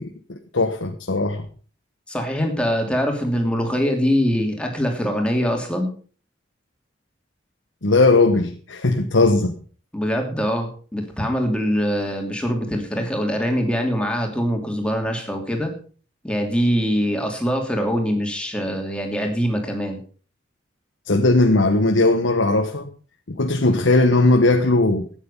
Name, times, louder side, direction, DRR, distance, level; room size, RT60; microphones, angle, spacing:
voice 1, 0.0-1.5 7.8-9.5 21.1-22.9 23.3-25.1, left 2 dB, 90° left, 1.3 m, -18 dB
voice 2, 2.1-5.9 9.9-15.7 16.2-20.0, equal, 5° left, 2.8 m, -23 dB
14.0 x 9.5 x 5.5 m
head